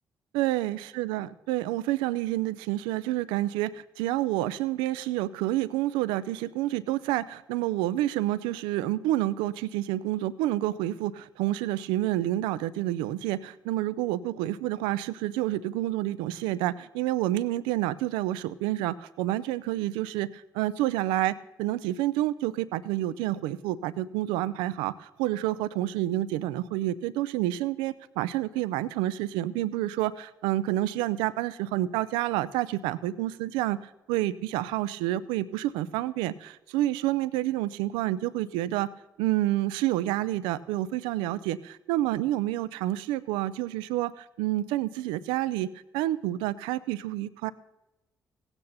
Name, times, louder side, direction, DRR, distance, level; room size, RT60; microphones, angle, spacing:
voice 1, 0.3-38.9 39.2-45.7 45.9-47.5, right 15 dB, 90° right, 17 dB, 0.4 m, -29 dB
16.5 x 8.8 x 4.1 m, 0.99 s
supercardioid pair, 50°, 8 cm